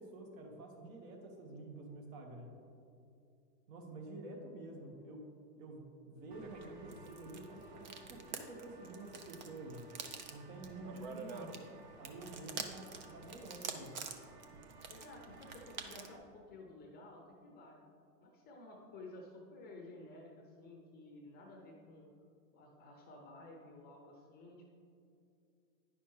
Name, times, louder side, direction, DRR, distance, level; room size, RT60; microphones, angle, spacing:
voice 1, 0.0-2.5 3.7-10.0 10.3-11.7 12.0-14.0, right 2 dB, 55° right, 2 dB, 1.5 m, -49 dB
sound 1, 6.3-16.2, right 5 dB, 30° right, 0.3 m, -48 dB
voice 2, 14.9-17.8 18.2-22.1 22.5-24.7, left 2 dB, 20° left, 0 dB, 0.6 m, -53 dB
9.5 x 5.7 x 3.2 m, 2.5 s
hypercardioid pair, 130°, 49 cm